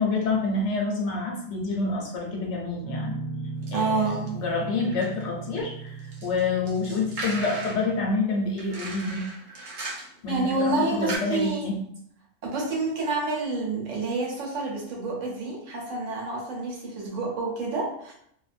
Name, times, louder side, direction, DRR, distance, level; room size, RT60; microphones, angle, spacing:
voice 1, 0.0-3.2 3.7-4.0 4.3-6.0 6.2-9.3 10.2-11.7, left 3 dB, 70° left, -1 dB, 0.9 m, -27 dB
Guitar, 2.8-8.1, right 4 dB, 40° right, 0.8 m, -37 dB
sound 1, 3.6-3.8 4.3-5.7 6.0-7.9 8.6-10.3 10.6-10.7 11.1-11.2, right 2 dB, 70° right, 1.0 m, -37 dB
voice 2, 3.7-4.4 10.3-11.7 12.4-18.1, right 3 dB, 85° right, -2 dB, 1.2 m, -28 dB
2.6 x 2.2 x 2.5 m, 0.70 s
omnidirectional pair, 1.3 m